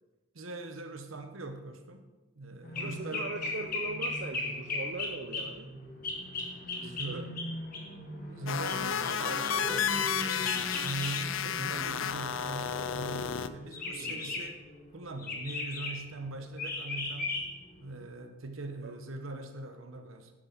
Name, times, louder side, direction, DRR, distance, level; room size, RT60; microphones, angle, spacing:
voice 1, 0.3-2.1 2.4-3.3 6.8-7.3 8.3-14.6 14.9-17.4 17.8-20.3, right 2 dB, 80° right, 7 dB, 1.1 m, -41 dB
sound 1, 2.6-18.1, left 2 dB, 40° left, 1.7 m, -38 dB
voice 2, 2.8-5.7 6.8-7.3 11.4-11.8 14.0-14.3 18.8-19.0, right 3 dB, 55° right, 4 dB, 0.5 m, -41 dB
sound 2, 8.5-13.5, left 8 dB, 70° left, 0.5 m, -32 dB
10.0 x 7.9 x 4.0 m, 1.1 s
head